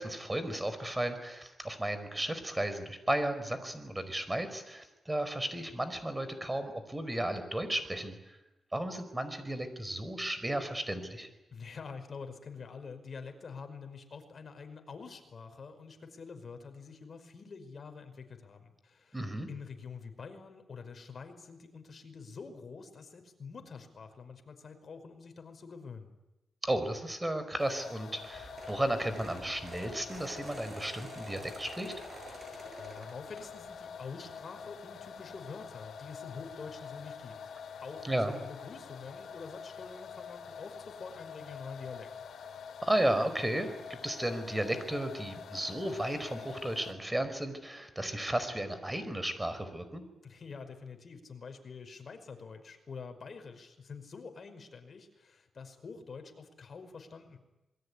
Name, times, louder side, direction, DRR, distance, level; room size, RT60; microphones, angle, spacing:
voice 1, 0.0-8.4 8.7-11.3 19.1-19.5 26.6-31.9 38.0-38.4 42.8-50.0, right 1 dB, 15° right, 11 dB, 5.0 m, -34 dB
voice 2, 11.5-19.2 19.5-26.1 32.3-37.4 37.8-42.1 50.2-57.4, left 5 dB, 55° left, 7 dB, 5.2 m, -46 dB
sound 1, 27.6-46.9, left 6 dB, 85° left, 2.5 m, -46 dB
sound 2, 28.2-33.9 34.3-34.6 35.8-35.9 36.1-36.3 36.6-36.7, right 2 dB, 45° right, 7.5 m, -50 dB
27.0 x 22.5 x 9.9 m, 0.97 s
cardioid pair, 90°, 0 cm